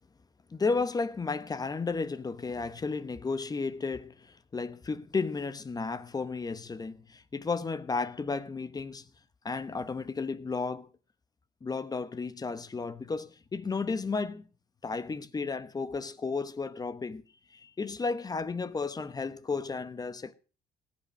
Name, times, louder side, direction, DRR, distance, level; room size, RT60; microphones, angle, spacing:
voice 1, 0.5-9.0 9.4-10.9 11.6-14.5 14.8-17.2 17.5-20.3, left 4 dB, 20° left, 0.9 m, -33 dB
17.5 x 8.4 x 6.3 m
cardioid pair, 110°, 17 cm